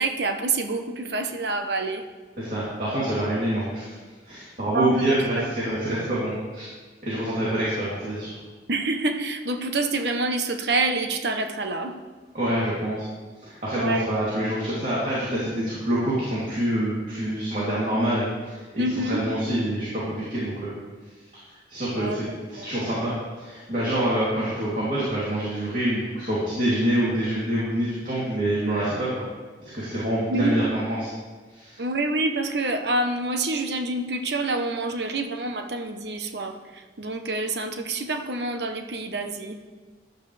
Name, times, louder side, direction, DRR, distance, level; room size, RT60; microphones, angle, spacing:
voice 1, 0.0-2.0 4.7-6.1 8.7-12.0 13.7-14.1 18.8-19.2 22.0-22.7 30.3-30.7 31.8-39.6, right 2 dB, 70° right, 6 dB, 1.0 m, -27 dB
voice 2, 2.4-4.0 4.2-6.7 7.0-8.3 12.3-13.0 13.4-20.7 21.7-29.1 29.6-31.1 31.5-31.8, right 1 dB, 45° right, -8 dB, 3.1 m, -26 dB
14.0 x 11.0 x 3.4 m, 1.4 s
head